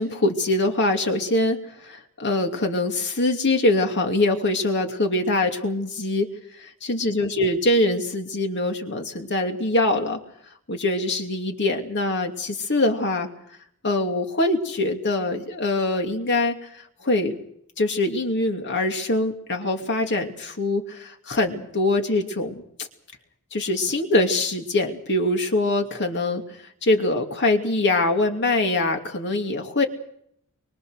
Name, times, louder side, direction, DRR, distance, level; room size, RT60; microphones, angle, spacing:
voice 1, 0.0-1.6 1.9-6.3 6.8-10.2 10.7-13.3 13.8-16.6 17.0-17.4 17.8-22.6 23.5-26.4 26.8-29.8, left 2 dB, 55° left, 4 dB, 2.7 m, -23 dB
24.0 x 23.0 x 6.5 m, 0.69 s
head